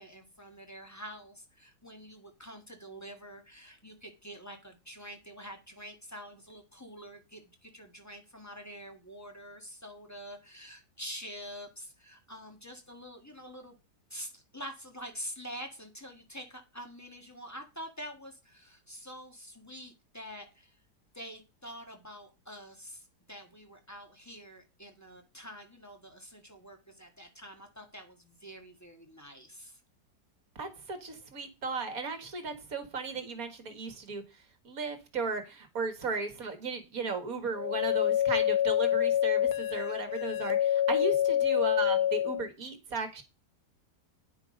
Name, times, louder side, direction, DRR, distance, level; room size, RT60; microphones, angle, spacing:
voice 1, 0.0-13.7 14.1-20.8 21.1-29.8, equal, 10° left, 4 dB, 1.5 m, -46 dB
voice 2, 30.6-34.2 34.6-43.2, right 4 dB, 55° right, 8 dB, 2.0 m, -36 dB
sound 1, 37.5-42.5, left 11 dB, 70° left, 1.2 m, -27 dB
9.7 x 5.9 x 5.2 m, 0.29 s
omnidirectional pair, 1.8 m